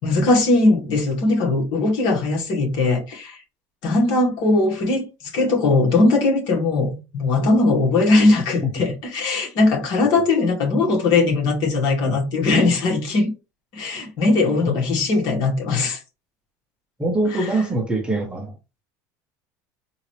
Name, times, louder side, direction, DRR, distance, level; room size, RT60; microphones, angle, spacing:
voice 1, 0.0-3.4 3.8-13.3 13.7-16.0, left 3 dB, 60° left, 2.1 m, -19 dB
voice 2, 17.0-18.5, right 1 dB, 10° right, 1.0 m, -23 dB
3.9 x 2.8 x 3.2 m
supercardioid pair, 115°, 9 cm